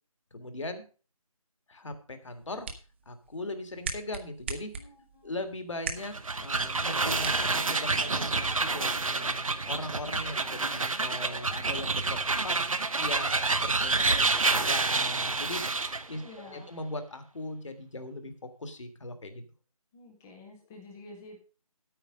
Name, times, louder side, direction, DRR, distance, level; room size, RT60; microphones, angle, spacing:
voice 1, 0.3-0.8 1.7-2.7 3.1-4.7 5.2-12.6 13.0-15.6 16.1-16.2 16.5-19.4, left 2 dB, 55° left, 8 dB, 2.0 m, -39 dB
sound 1, 2.2-8.2, right 4 dB, 20° right, 0.8 m, -42 dB
voice 2, 4.7-5.4 16.2-16.7 19.9-21.4, left 2 dB, 5° left, 2 dB, 0.5 m, -49 dB
sound 2, 6.0-16.1, right 3 dB, 65° right, 1.0 m, -28 dB
9.5 x 9.0 x 5.0 m, 0.36 s
figure-of-eight pair, 155°, 19 cm